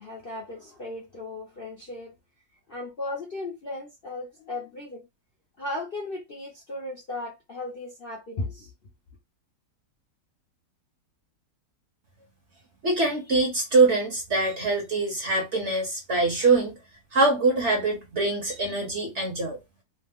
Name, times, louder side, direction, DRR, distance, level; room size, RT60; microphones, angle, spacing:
voice 1, 0.0-2.1 2.7-5.0 5.6-8.7, left 2 dB, 50° left, 0.7 m, -36 dB
voice 2, 12.8-16.7 17.1-19.6, right 3 dB, 50° right, 1.0 m, -23 dB
3.2 x 2.1 x 3.5 m
omnidirectional pair, 1.9 m